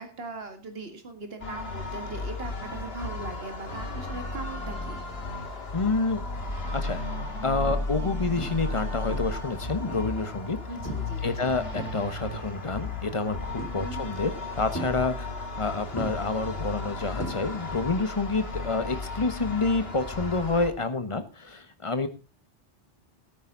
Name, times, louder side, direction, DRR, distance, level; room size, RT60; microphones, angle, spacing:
voice 1, 0.0-5.0 10.7-11.5 13.8-14.1, right 3 dB, 60° right, 7 dB, 2.2 m, -40 dB
sound 1, 1.4-20.7, left 2 dB, 60° left, 2.2 m, -34 dB
voice 2, 5.7-6.2 6.7-7.0 7.4-10.6 11.2-14.3 14.6-22.1, left 3 dB, 30° left, 10 dB, 1.4 m, -28 dB
sound 2, 6.0-6.4 6.9-7.1 7.7-8.1 8.4-8.8 9.1-10.2 10.9-11.2 11.5-12.4 13.6-14.1 14.7-15.6 16.0-17.9 18.1-18.5 20.6-20.7, right 1 dB, 10° left, 3.2 m, -39 dB
17.5 x 9.3 x 3.9 m, 0.31 s
omnidirectional pair, 1.2 m